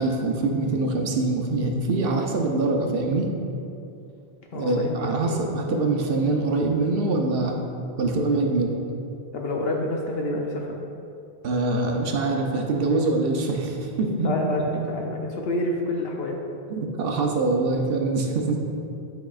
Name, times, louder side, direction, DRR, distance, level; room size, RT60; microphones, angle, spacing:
voice 1, 0.0-3.3 4.5-7.6 8.0-8.8 11.4-14.3 14.7-15.0 16.7-18.6, right 3 dB, 60° right, 1 dB, 0.8 m, -24 dB
voice 2, 4.5-5.5 9.3-10.8 14.2-16.4, left 1 dB, 70° left, 0 dB, 0.8 m, -28 dB
8.8 x 4.7 x 2.4 m, 2.7 s
omnidirectional pair, 1.1 m